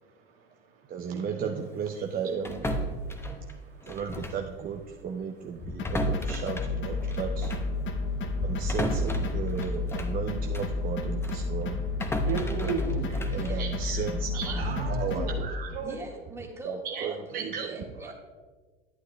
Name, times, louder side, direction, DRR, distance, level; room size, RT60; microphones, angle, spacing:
voice 1, 0.0-1.7 3.0-4.0 5.6-5.9 7.1-7.2 7.8-8.7 9.4-9.6 11.5-13.3 14.6-15.4 15.7-16.0 17.3-17.8, right 4 dB, 75° right, 1 dB, 1.6 m, -38 dB
voice 2, 0.9-2.7 3.3-7.5 8.4-11.8 13.1-15.7 16.6-17.7 18.0-18.1, right 6 dB, 30° right, 3 dB, 0.5 m, -35 dB
sound 1, 2.4-4.5 4.8-5.0 5.5-10.8 11.2-14.3, equal, 10° left, 0.7 m, -35 dB
sound 2, 5.8-15.5, left 2 dB, 40° left, 0.9 m, -31 dB
voice 3, 13.3-13.6 14.3-14.7 15.8-18.1, right 2 dB, 10° right, 0 dB, 1.6 m, -43 dB
11.0 x 9.2 x 2.3 m, 1.4 s
hypercardioid pair, 80°, 30 cm